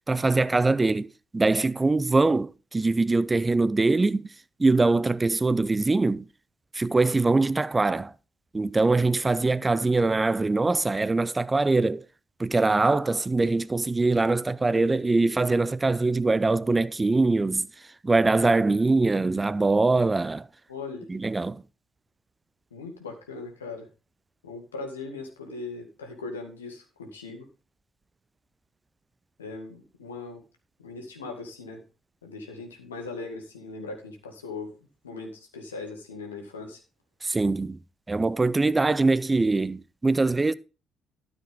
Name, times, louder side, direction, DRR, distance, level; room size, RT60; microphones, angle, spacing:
voice 1, 0.1-1.1 1.3-4.3 4.6-6.2 6.7-8.1 8.5-12.0 12.4-17.7 18.0-20.5 21.1-21.6 37.2-37.8 38.1-40.5, right 3 dB, 20° right, 0.5 m, -23 dB
voice 2, 20.7-21.1 22.7-23.9 24.4-27.5 29.4-30.4 30.8-31.8 32.2-36.8, left 3 dB, 80° left, 2.0 m, -39 dB
12.5 x 8.0 x 3.6 m
figure-of-eight pair, 45°, 0 cm